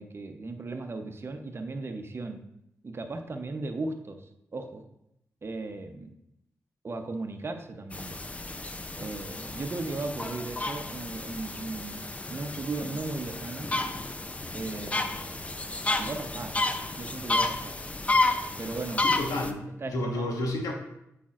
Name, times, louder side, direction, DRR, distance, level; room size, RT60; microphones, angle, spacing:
voice 1, 0.0-2.4 2.8-4.2 4.5-4.8 5.4-6.1 6.8-8.2 9.0-13.7 14.5-15.4 16.0-16.5 17.0-17.8 18.6-19.1 19.8-20.3, right 3 dB, 40° right, 6 dB, 0.8 m, -36 dB
sound 1, 7.9-19.5, left 2 dB, 20° left, 0.5 m, -31 dB
voice 2, 19.0-20.7, left 1 dB, 75° left, 1 dB, 1.2 m, -31 dB
8.5 x 5.0 x 2.5 m, 0.82 s
cardioid pair, 55°, 6 cm